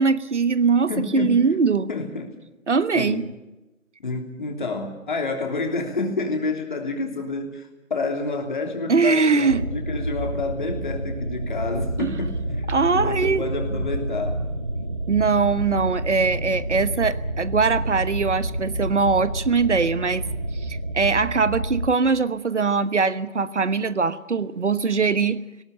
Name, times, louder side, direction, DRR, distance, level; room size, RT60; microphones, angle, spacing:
voice 1, 0.0-1.9 2.7-3.3 8.9-9.6 12.0-12.1 12.7-13.4 15.1-20.2 20.6-25.4, right 4 dB, 55° right, 15 dB, 1.2 m, -21 dB
voice 2, 0.9-1.4 1.9-2.3 2.9-3.2 4.0-12.7 12.9-14.5, left 3 dB, 35° left, 4 dB, 3.1 m, -29 dB
sound 1, 9.5-21.9, right 1 dB, 25° right, 0.8 m, -29 dB
20.0 x 18.0 x 9.1 m, 1.0 s
figure-of-eight pair, 165°, 41 cm